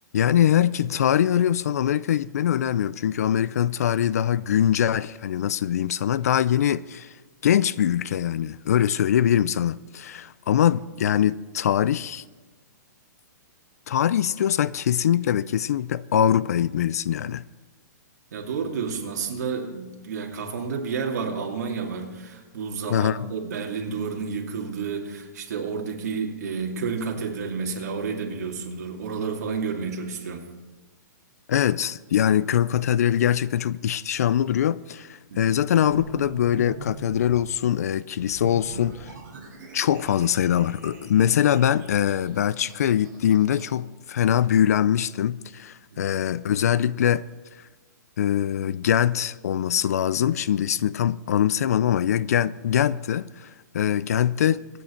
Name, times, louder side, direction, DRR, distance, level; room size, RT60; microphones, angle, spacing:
voice 1, 0.1-7.1 7.4-12.2 13.9-17.5 22.9-23.2 31.5-39.1 39.7-47.3 48.2-54.6, left 10 dB, 55° left, 0.4 m, -23 dB
voice 2, 18.3-30.4 35.3-35.4 45.9-46.0, right 5 dB, 55° right, 2.6 m, -30 dB
sound 1, 35.9-37.5 38.2-43.7, right 3 dB, 25° right, 5.9 m, -43 dB
24.0 x 9.2 x 4.4 m
hypercardioid pair, 175°, 10 cm